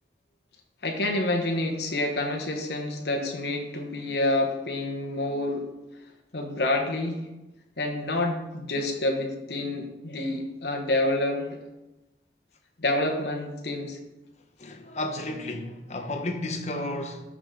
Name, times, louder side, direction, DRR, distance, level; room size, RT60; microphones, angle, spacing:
voice 1, 0.8-5.7 6.3-7.3 7.8-11.6 12.8-14.0, left 1 dB, 70° left, 1.2 m, -28 dB
voice 2, 14.6-17.2, left 1 dB, 40° left, 0.9 m, -32 dB
12.5 x 4.9 x 3.8 m
head